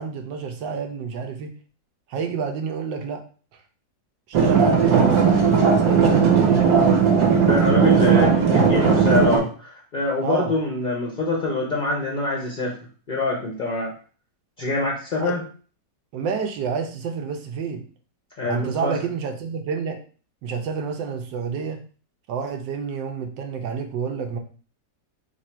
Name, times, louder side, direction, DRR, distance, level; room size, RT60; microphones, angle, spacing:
voice 1, 0.0-1.5 2.1-3.2 4.4-7.4 7.9-8.7 10.2-10.5 15.2-15.4 16.1-17.8 18.4-20.0 20.4-21.8 22.3-24.4, right 6 dB, 85° right, 5 dB, 1.4 m, -29 dB
sound 1, 4.3-9.4, right 6 dB, 60° right, 1.3 m, -17 dB
voice 2, 7.5-12.8 13.1-13.9 14.6-15.4 18.4-19.0, left 2 dB, 55° left, -2 dB, 0.5 m, -25 dB
3.6 x 2.6 x 4.3 m, 0.39 s
omnidirectional pair, 1.9 m